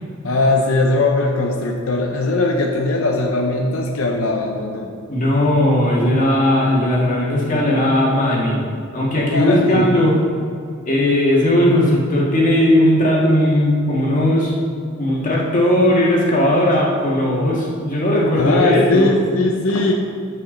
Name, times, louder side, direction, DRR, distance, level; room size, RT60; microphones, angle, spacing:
voice 1, 0.2-4.9 9.2-9.9 18.3-19.9, left 2 dB, 85° left, 1 dB, 0.8 m, -19 dB
voice 2, 5.1-8.6 8.9-10.2 10.9-14.5 15.0-19.1, left 1 dB, 40° left, -4 dB, 2.0 m, -17 dB
14.0 x 5.5 x 3.9 m, 2.4 s
head